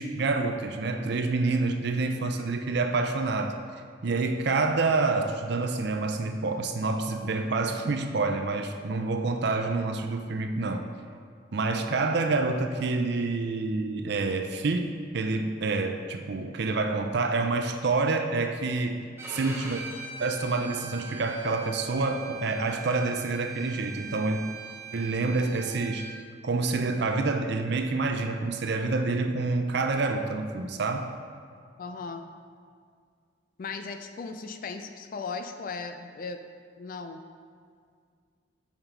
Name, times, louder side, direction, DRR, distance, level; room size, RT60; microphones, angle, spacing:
voice 1, 0.0-3.6 4.0-10.9 11.5-19.0 19.3-19.8 20.2-24.4 24.9-26.1 26.4-31.1, right 3 dB, 60° right, 6 dB, 0.5 m, -27 dB
Bowed string instrument, 19.2-26.1, right 4 dB, 15° right, 0.7 m, -41 dB
voice 2, 31.8-32.2 33.6-36.5 36.8-37.2, left 4 dB, 45° left, 7 dB, 0.4 m, -37 dB
5.8 x 5.2 x 4.5 m, 2.1 s
head